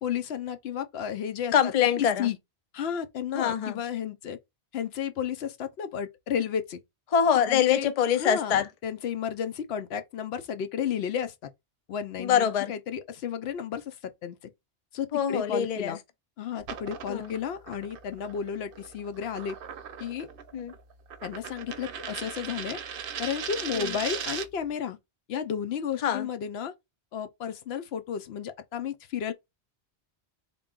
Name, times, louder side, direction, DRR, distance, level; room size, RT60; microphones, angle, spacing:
voice 1, 0.0-1.5 2.0-2.4 2.7-4.4 4.7-6.8 7.5-7.9 8.2-11.5 11.9-14.0 14.2-14.4 14.9-16.0 16.4-19.6 20.0-20.3 21.2-22.8 23.2-25.0 25.3-26.7 27.1-29.3, left 8 dB, 70° left, 0.8 m, -32 dB
voice 2, 1.5-2.3 3.3-3.8 7.1-8.7 12.2-12.7 15.1-16.0 17.1-17.3 20.5-20.7 23.7-24.0 26.0-26.3, left 8 dB, 50° left, 0.5 m, -24 dB
sound 1, 16.6-24.7, right 7 dB, 60° right, 0.7 m, -39 dB
3.7 x 2.2 x 3.6 m
omnidirectional pair, 1.1 m